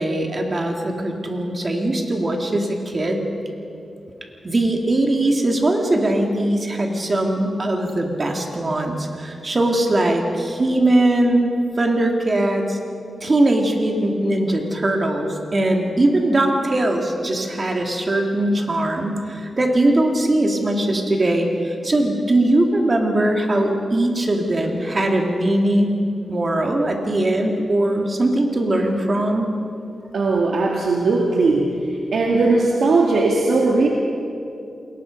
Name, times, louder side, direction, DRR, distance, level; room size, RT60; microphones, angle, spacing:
voice 1, 0.0-3.3 4.4-12.8 13.2-26.0 26.3-29.5, right 1 dB, 35° right, 2 dB, 2.6 m, -20 dB
voice 2, 30.1-31.8 32.1-33.9, right 3 dB, 70° right, -1 dB, 2.0 m, -18 dB
28.5 x 21.0 x 5.4 m, 2.7 s
wide cardioid pair, 125°, 0 cm